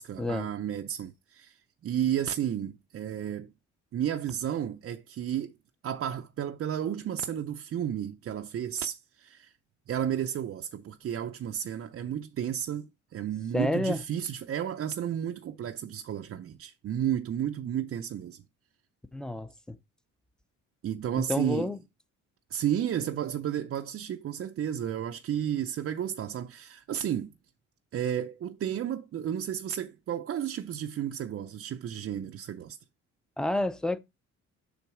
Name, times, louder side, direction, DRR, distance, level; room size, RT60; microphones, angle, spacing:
voice 1, 0.0-3.5 3.9-5.5 5.8-9.5 9.9-18.4 20.8-21.7 22.5-27.3 27.9-32.8, right 10 dB, 50° right, 0.5 m, -32 dB
voice 2, 13.5-14.0 19.1-19.8 21.3-21.8 33.4-34.0, left 1 dB, ahead, 0.6 m, -29 dB
7.0 x 3.8 x 4.8 m
cardioid pair, 90°, 30 cm